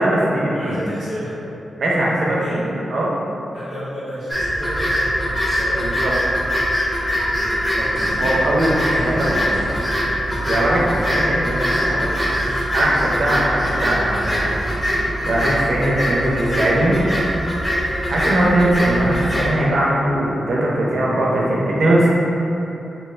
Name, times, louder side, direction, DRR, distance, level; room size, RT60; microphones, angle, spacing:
voice 1, 0.0-0.8 1.8-2.4 2.9-3.1 5.8-6.1 7.8-9.5 10.4-12.0 12.7-14.6 15.2-17.1 18.1-22.1, right 1 dB, 55° right, -5 dB, 0.5 m, -20 dB
voice 2, 0.5-1.5 2.2-2.8 3.5-6.1 7.4-7.7 11.4-12.7 13.2-13.8 16.0-16.6, equal, 70° left, -11 dB, 1.0 m, -33 dB
sound 1, 4.3-19.5, equal, 10° left, 0.4 m, -22 dB
sound 2, 7.7-15.8, equal, 40° left, 0.9 m, -36 dB
2.7 x 2.2 x 3.1 m, 2.9 s
wide cardioid pair, 165°, 0 cm